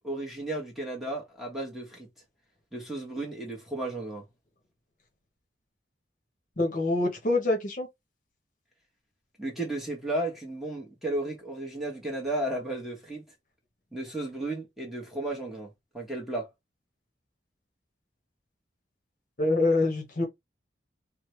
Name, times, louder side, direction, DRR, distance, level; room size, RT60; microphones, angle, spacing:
voice 1, 0.0-2.1 2.7-4.2 9.4-13.2 13.9-16.5, right 1 dB, ahead, 1.0 m, -34 dB
voice 2, 6.6-7.9 19.4-20.2, left 2 dB, 45° left, 0.9 m, -25 dB
3.1 x 2.1 x 3.1 m
head